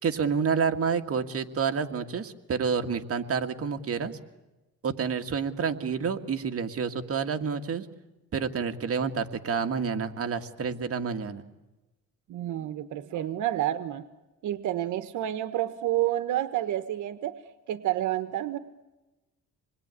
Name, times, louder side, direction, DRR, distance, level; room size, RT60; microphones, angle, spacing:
voice 1, 0.0-4.2 4.8-7.9 8.3-11.4, right 6 dB, 50° right, 5 dB, 2.1 m, -29 dB
voice 2, 12.3-14.0 14.4-17.4 17.7-18.6, right 13 dB, 80° right, 10 dB, 1.2 m, -29 dB
27.0 x 21.0 x 9.8 m, 1.1 s
cardioid pair, 90°, 30 cm